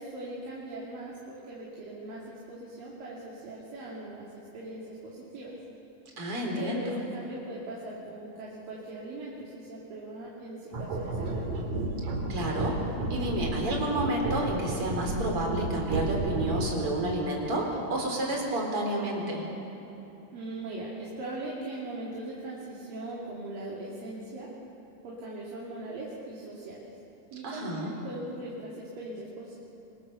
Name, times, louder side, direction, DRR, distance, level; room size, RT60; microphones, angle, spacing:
voice 1, 0.0-5.5 6.5-11.5 20.3-24.5 25.0-26.9 27.3-29.6, right 2 dB, 85° right, -6 dB, 4.6 m, -40 dB
voice 2, 6.2-6.9 12.3-12.8 13.1-19.5 27.4-27.9, right 1 dB, 40° right, 0 dB, 4.9 m, -30 dB
sound 1, 10.7-16.9, right 2 dB, 65° right, 4.1 m, -32 dB
26.0 x 24.5 x 6.9 m, 2.9 s
omnidirectional pair, 3.9 m